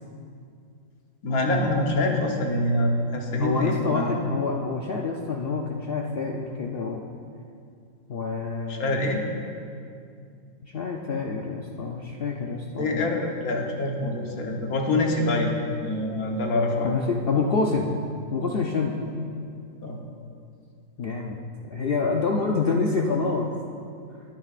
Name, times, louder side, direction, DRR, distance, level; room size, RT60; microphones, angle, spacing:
voice 1, 1.2-4.1 8.7-9.2 12.8-15.5 15.8-16.9 19.8-20.0, left 2 dB, 85° left, 1 dB, 1.6 m, -25 dB
voice 2, 3.4-7.0 8.1-9.0 10.6-13.1 16.8-18.0 18.3-19.0 21.0-21.4 21.6-23.5, left 4 dB, 55° left, 0 dB, 0.7 m, -27 dB
20.0 x 9.2 x 2.5 m, 2.4 s
omnidirectional pair, 1.5 m